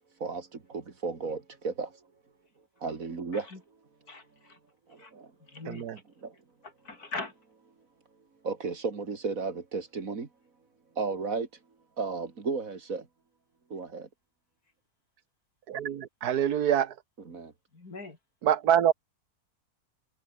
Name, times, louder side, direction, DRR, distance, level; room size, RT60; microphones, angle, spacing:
voice 1, 0.2-2.0 2.8-3.5 4.9-5.3 6.2-6.3 8.4-10.3 11.0-11.5 12.0-13.1 13.7-14.1 17.2-17.5, right 4 dB, 60° right, 2.7 m, -34 dB
voice 2, 4.1-4.6 5.0-5.1 5.4-6.0 6.6-7.3 16.3-16.5 17.7-18.2, left 3 dB, 75° left, 4.6 m, -42 dB
voice 3, 5.7-6.0 15.7-16.9 18.4-18.9, right 10 dB, 80° right, 1.6 m, -25 dB
omnidirectional pair, 1.6 m